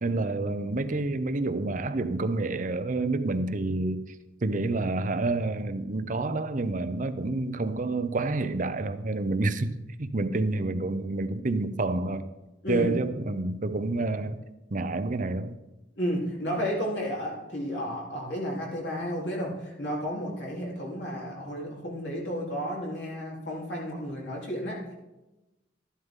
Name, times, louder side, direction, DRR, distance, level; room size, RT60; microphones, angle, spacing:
voice 1, 0.0-4.0 4.4-9.7 10.0-12.3 12.7-14.4 14.7-15.5, right 2 dB, 45° right, 0.7 m, -28 dB
voice 2, 16.0-24.9, equal, 70° left, 3.6 m, -32 dB
12.5 x 11.0 x 3.8 m
head